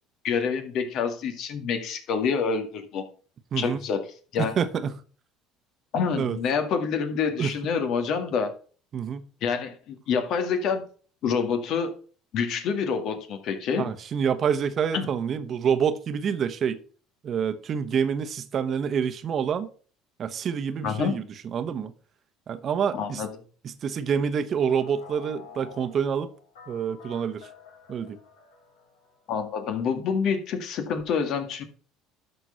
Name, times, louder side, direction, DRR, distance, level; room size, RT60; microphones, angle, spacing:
voice 1, 0.2-3.1 3.6-4.0 4.3-4.5 5.9-8.6 9.4-10.8 11.2-11.9 12.3-13.9 14.9-15.1 20.8-21.2 22.9-23.3 29.3-31.6, left 6 dB, 60° left, 2.0 m, -27 dB
voice 2, 3.5-3.8 4.4-4.9 6.2-6.4 7.4-7.5 8.9-9.3 13.8-16.8 17.2-19.7 20.2-21.2 21.5-21.9 22.5-23.2 23.6-26.3 26.7-27.5 27.9-28.2, right 7 dB, 45° right, 1.2 m, -27 dB
sound 1, 24.6-29.2, left 6 dB, 80° left, 3.8 m, -49 dB
12.5 x 4.5 x 5.7 m
hypercardioid pair, 70°, 0 cm